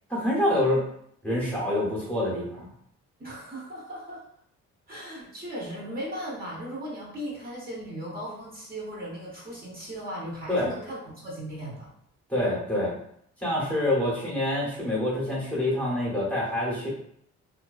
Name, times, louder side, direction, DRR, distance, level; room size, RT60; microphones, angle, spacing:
voice 1, 0.1-0.8 1.2-2.7 10.5-10.7 12.3-12.9 13.4-16.9, left 1 dB, 5° left, -6 dB, 0.9 m, -26 dB
voice 2, 3.2-4.2 4.9-11.9, equal, 30° right, -6 dB, 0.9 m, -37 dB
2.5 x 2.1 x 2.3 m, 0.69 s
cardioid pair, 90°, 30 cm